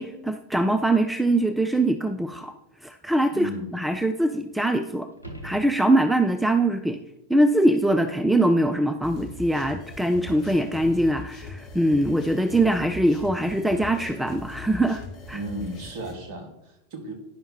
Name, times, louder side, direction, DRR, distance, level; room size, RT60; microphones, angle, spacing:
voice 1, 0.0-2.5 2.8-5.1 5.4-7.0 7.3-15.4, right 1 dB, 5° right, 8 dB, 0.3 m, -23 dB
voice 2, 3.3-3.7 15.3-17.1, right 1 dB, 45° right, 2 dB, 1.5 m, -35 dB
sound 1, 5.1-6.4 11.2-11.3, equal, 85° right, 1.0 m, -42 dB
sound 2, 9.0-16.1, left 2 dB, 30° left, 1.6 m, -41 dB
10.0 x 5.6 x 2.8 m, 0.90 s
figure-of-eight pair, 90°, 0 cm